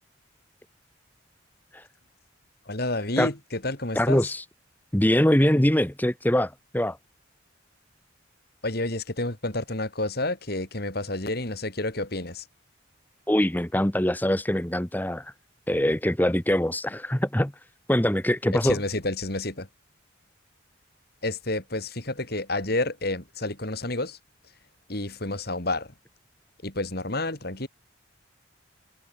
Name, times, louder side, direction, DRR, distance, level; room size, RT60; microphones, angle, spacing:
voice 1, 2.7-4.2 8.6-12.5 18.5-19.7 21.2-24.2 24.9-25.9 26.6-27.7, left 2 dB, 50° left, 3.1 m, -30 dB
voice 2, 3.9-4.4 4.9-7.0 13.3-15.3 15.7-17.5 17.9-18.8, equal, 10° left, 1.1 m, -23 dB
head